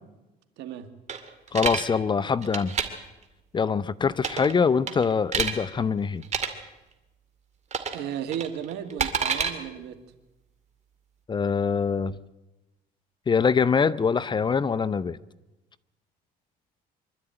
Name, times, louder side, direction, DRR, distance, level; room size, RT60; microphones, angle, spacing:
voice 1, 0.6-0.9 7.9-10.0, right 9 dB, 90° right, 8 dB, 1.9 m, -34 dB
sound 1, 1.1-1.8 2.4-2.9 4.2-4.5 4.9-5.5 6.2-6.5 7.7-8.0 8.3-9.5, right 6 dB, 40° right, 2.2 m, -27 dB
voice 2, 1.5-2.7 3.5-6.2 11.3-12.2 13.3-15.2, left 5 dB, 25° left, 16 dB, 0.6 m, -24 dB
24.5 x 12.5 x 9.0 m, 1.0 s
cardioid pair, 110°, 17 cm